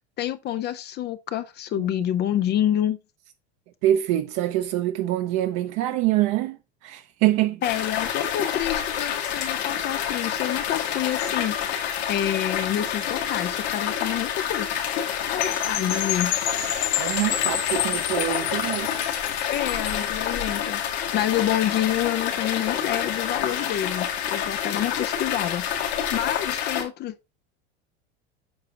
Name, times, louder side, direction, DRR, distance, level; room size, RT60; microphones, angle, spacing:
voice 1, 0.2-3.0 7.6-11.8 12.1-14.7 15.3-16.3 19.5-25.7 26.1-27.1, left 11 dB, 30° left, 0.4 m, -28 dB
voice 2, 3.8-7.6 17.0-18.9, right 14 dB, 50° right, 0.7 m, -25 dB
sound 1, 7.6-26.8, left 9 dB, 75° left, 2.1 m, -28 dB
Percussion / Wind chime, 15.4-20.1, left 11 dB, 55° left, 2.0 m, -30 dB
8.6 x 5.7 x 2.8 m
hypercardioid pair, 100°, 33 cm